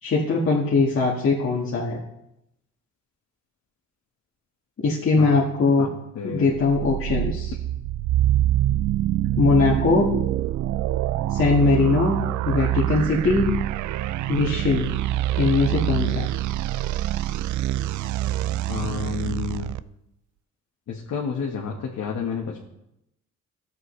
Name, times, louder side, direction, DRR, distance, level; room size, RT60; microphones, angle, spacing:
voice 1, 0.0-2.0 4.8-5.9 6.2-7.5 9.4-10.1 11.3-12.2 12.4-13.5 14.3-14.9 15.4-16.3, left 3 dB, 45° left, -5 dB, 1.7 m, -21 dB
voice 2, 6.1-6.6 18.7-19.7 20.9-22.6, left 6 dB, 60° left, -2 dB, 1.5 m, -30 dB
sound 1, 6.5-19.8, right 13 dB, 75° right, 0.5 m, -25 dB
13.5 x 7.6 x 3.3 m, 0.85 s
cardioid pair, 90°, 30 cm